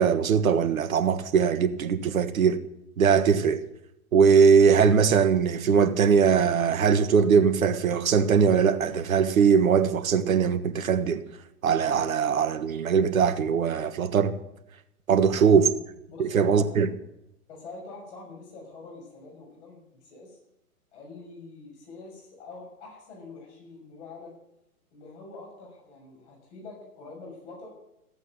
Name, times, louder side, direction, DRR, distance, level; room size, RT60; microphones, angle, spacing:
voice 1, 0.0-2.6 3.0-3.6 4.1-11.2 11.6-14.3 15.1-15.7 16.2-16.9, right 6 dB, 60° right, 1.6 m, -21 dB
voice 2, 15.1-15.6 16.1-16.7 17.5-20.4 20.9-24.3 24.9-27.7, left 3 dB, 45° left, 6.7 m, -45 dB
15.0 x 8.2 x 9.6 m
figure-of-eight pair, 120°, 46 cm